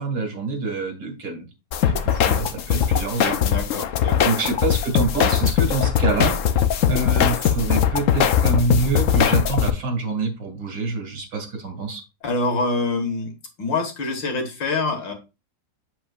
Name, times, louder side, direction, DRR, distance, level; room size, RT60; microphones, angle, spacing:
voice 1, 0.0-1.5 1.9-3.4 4.2-12.0, right 3 dB, 90° right, 3 dB, 2.8 m, -26 dB
sound 1, 1.7-9.7, left 9 dB, 65° left, 0.8 m, -20 dB
voice 2, 3.4-4.3 12.2-13.3 13.6-15.1, left 3 dB, 80° left, 5 dB, 2.3 m, -25 dB
7.8 x 7.8 x 2.4 m, 0.28 s
omnidirectional pair, 2.0 m